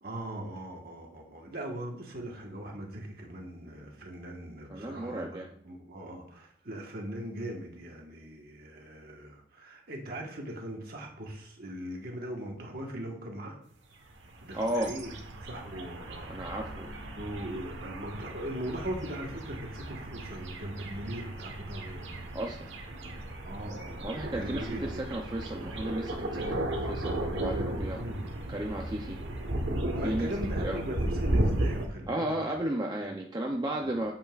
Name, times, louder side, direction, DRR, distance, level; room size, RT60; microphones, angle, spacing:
voice 1, 0.0-13.6 14.4-15.1 15.4-16.4 17.2-22.1 23.4-25.2 27.5-28.3 29.9-32.6 33.0-33.1 33.4-33.5 33.8-34.1, right 1 dB, 50° right, 1 dB, 1.4 m, -40 dB
voice 2, 4.7-5.5 14.5-15.0 16.3-16.9 22.3-22.6 24.0-28.0 28.5-29.2 30.0-30.3 30.6-30.8 32.1-34.1, right 1 dB, 20° right, 1 dB, 0.6 m, -34 dB
sound 1, 14.1-31.9, right 1 dB, 65° right, 1.3 m, -35 dB
8.7 x 7.1 x 2.5 m, 0.70 s
head